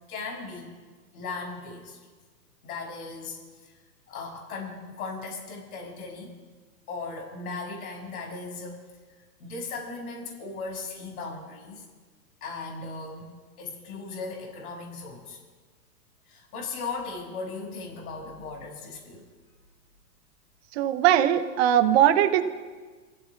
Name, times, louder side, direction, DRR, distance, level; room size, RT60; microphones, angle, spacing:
voice 1, 0.1-0.7 1.1-2.0 2.6-3.4 4.1-6.3 6.9-8.8 9.4-11.8 12.4-15.4 16.3-19.3, left 4 dB, 60° left, -1 dB, 6.1 m, -37 dB
voice 2, 20.7-22.4, right 11 dB, 40° right, 9 dB, 1.0 m, -20 dB
28.5 x 16.0 x 2.4 m, 1.4 s
hypercardioid pair, 125°, 49 cm